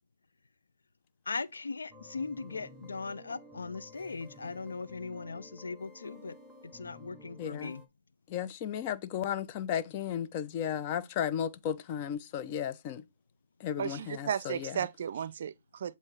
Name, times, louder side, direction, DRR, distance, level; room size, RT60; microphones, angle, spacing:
voice 1, 1.3-6.3 6.7-7.8, left 4 dB, 85° left, 0.6 m, -39 dB
sound 1, 1.9-7.9, left 2 dB, ahead, 0.9 m, -53 dB
voice 2, 7.4-7.7 8.3-13.0 13.6-14.9, left 9 dB, 30° left, 0.6 m, -34 dB
voice 3, 13.8-16.0, right 8 dB, 50° right, 0.5 m, -34 dB
7.5 x 2.7 x 4.7 m
hypercardioid pair, 150°, 0 cm